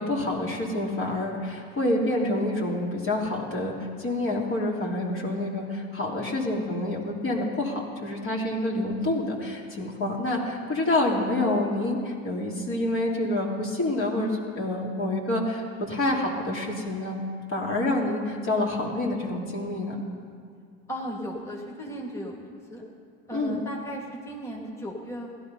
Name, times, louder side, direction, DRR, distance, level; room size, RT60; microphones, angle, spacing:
voice 1, 0.0-3.7 4.0-17.2 17.5-19.9 23.3-23.5, left 1 dB, 40° left, -2 dB, 3.0 m, -27 dB
voice 2, 20.9-22.8 23.3-25.4, equal, 10° left, -2 dB, 2.4 m, -36 dB
16.0 x 12.0 x 5.5 m, 2.3 s
hypercardioid pair, 90°, 32 cm